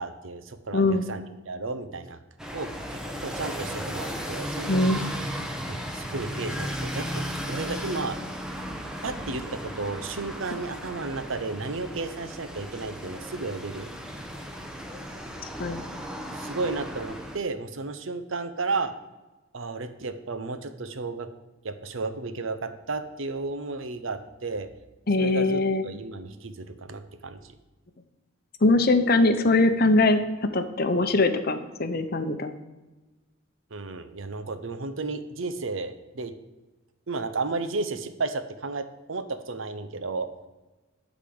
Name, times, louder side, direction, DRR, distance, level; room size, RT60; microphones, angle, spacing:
voice 1, 0.0-2.2 2.5-5.1 5.7-8.2 9.0-13.9 16.3-18.9 19.5-21.3 21.6-24.7 25.2-27.4 33.7-36.3 37.1-40.3, right 3 dB, 70° right, 10 dB, 0.7 m, -33 dB
voice 2, 0.7-1.1 4.7-5.0 15.6-15.8 25.1-25.8 28.6-30.2 30.5-32.5, left 2 dB, 45° left, 8 dB, 0.7 m, -22 dB
sound 1, 2.4-17.4, equal, 5° right, 0.8 m, -35 dB
11.5 x 4.1 x 7.7 m, 1.1 s
head